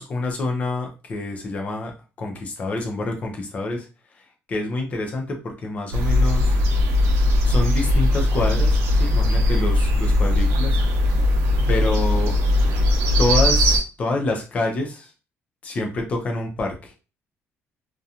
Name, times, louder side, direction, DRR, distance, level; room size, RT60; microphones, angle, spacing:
voice 1, 0.0-1.9 2.2-3.9 4.5-6.6 7.4-10.8 11.7-12.4 13.2-15.1 15.6-16.9, left 2 dB, 30° left, 2 dB, 0.6 m, -27 dB
sound 1, 5.9-13.8, left 1 dB, 90° right, 0.6 m, -19 dB
2.4 x 2.2 x 2.8 m, 0.31 s
cardioid pair, 170°, 5 cm